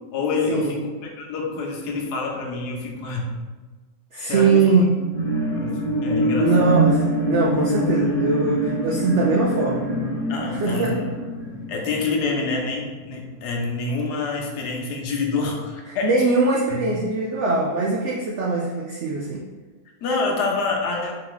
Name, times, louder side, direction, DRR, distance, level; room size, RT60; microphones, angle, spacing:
voice 1, 0.1-3.3 4.2-4.9 5.5-6.5 10.3-11.1 11.7-16.1 16.7-17.0 20.0-21.1, left 3 dB, 75° left, 0 dB, 1.3 m, -27 dB
voice 2, 4.1-4.9 6.4-9.8 10.5-11.0 16.0-19.4, right 3 dB, 80° right, -2 dB, 0.6 m, -21 dB
sound 1, 5.0-12.7 13.2-13.3, right 1 dB, 45° left, 1.1 m, -24 dB
3.8 x 2.8 x 3.8 m, 1.3 s
omnidirectional pair, 1.8 m